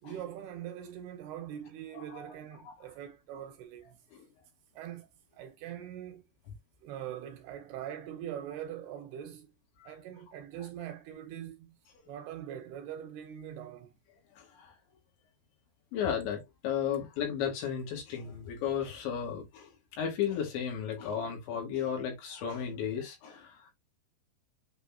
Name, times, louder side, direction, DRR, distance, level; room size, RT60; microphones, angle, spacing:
voice 1, 0.0-4.0 4.7-5.1 5.3-6.2 6.8-9.5 9.8-11.8 12.1-13.9, right 10 dB, 75° right, 2.8 m, -42 dB
voice 2, 1.9-2.3 2.7-2.8 4.1-4.3 9.8-10.0 14.3-14.7 15.9-23.7, left 8 dB, 85° left, 4.6 m, -34 dB
8.3 x 4.1 x 2.9 m
omnidirectional pair, 5.1 m